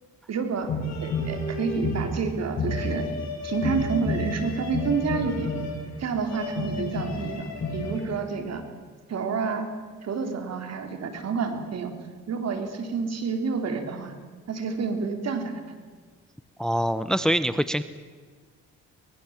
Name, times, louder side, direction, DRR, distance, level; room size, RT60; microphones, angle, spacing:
voice 1, 0.3-0.7 1.0-3.1 3.4-5.5 6.0-8.6 9.1-9.7 10.0-11.9 12.3-14.2 14.5-15.6, right 5 dB, 60° right, 6 dB, 3.7 m, -29 dB
sound 1, 0.6-8.0, left 2 dB, 60° left, 7.8 m, -30 dB
voice 2, 16.6-17.8, equal, ahead, 13 dB, 0.8 m, -24 dB
23.5 x 21.0 x 7.4 m, 1.5 s
cardioid pair, 90°, 30 cm